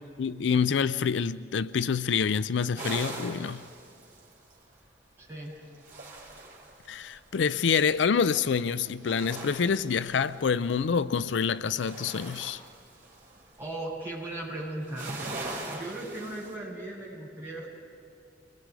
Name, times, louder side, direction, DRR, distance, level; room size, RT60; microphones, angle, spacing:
voice 1, 0.2-3.6 6.9-12.6, left 6 dB, 80° left, 0.5 m, -27 dB
sound 1, 2.8-4.7 5.5-7.2 8.9-10.8 11.2-13.6 14.7-16.5, right 2 dB, 45° right, 5.5 m, -41 dB
voice 2, 5.2-5.6 13.6-15.1 15.7-17.7, right 1 dB, 15° right, 7.2 m, -37 dB
29.0 x 21.0 x 4.8 m
head